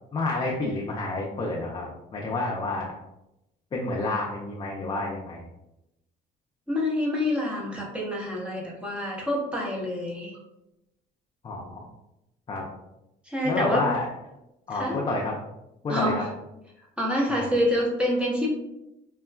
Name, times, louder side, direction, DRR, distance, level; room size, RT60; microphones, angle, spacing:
voice 1, 0.1-2.9 3.7-5.5 11.4-11.9 12.5-12.7 13.4-14.1 14.7-15.4 15.8-16.2 17.3-17.5, left 2 dB, 30° left, -2 dB, 0.5 m, -29 dB
voice 2, 6.7-10.4 13.2-13.9 14.7-15.0 15.9-16.3 17.0-18.5, left 1 dB, 5° right, -4 dB, 0.8 m, -27 dB
3.7 x 2.2 x 2.2 m, 0.91 s
cardioid pair, 110°, 17 cm